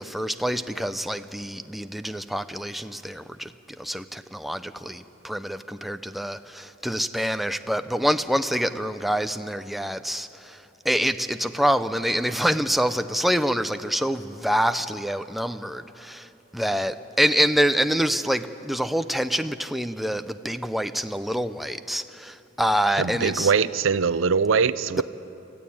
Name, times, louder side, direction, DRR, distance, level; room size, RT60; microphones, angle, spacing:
voice 1, 0.0-3.5 3.8-23.5 24.9-25.0, equal, ahead, 0.5 m, -26 dB
voice 2, 23.0-25.0, right 5 dB, 80° right, 0.6 m, -22 dB
25.0 x 15.0 x 8.7 m
head